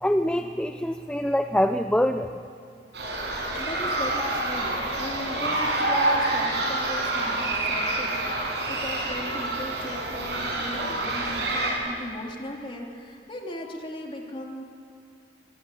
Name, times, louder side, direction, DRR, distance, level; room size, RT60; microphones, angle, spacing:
voice 1, 0.0-2.4, equal, 5° left, 7 dB, 0.6 m, -24 dB
sound 1, 2.9-11.7, right 2 dB, 70° right, 7.0 m, -27 dB
voice 2, 3.6-14.6, left 1 dB, 30° left, 0 dB, 3.1 m, -37 dB
24.0 x 20.0 x 9.1 m, 2.7 s
head